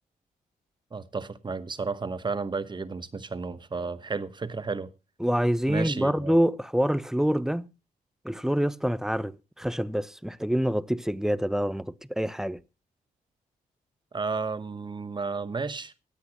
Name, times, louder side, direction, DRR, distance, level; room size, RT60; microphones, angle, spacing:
voice 1, 0.9-4.9 5.7-6.3 14.1-16.1, right 4 dB, 30° right, 1.0 m, -32 dB
voice 2, 5.2-7.7 8.2-12.6, equal, 5° right, 0.5 m, -26 dB
24.0 x 8.4 x 2.9 m
cardioid pair, 80°, 16 cm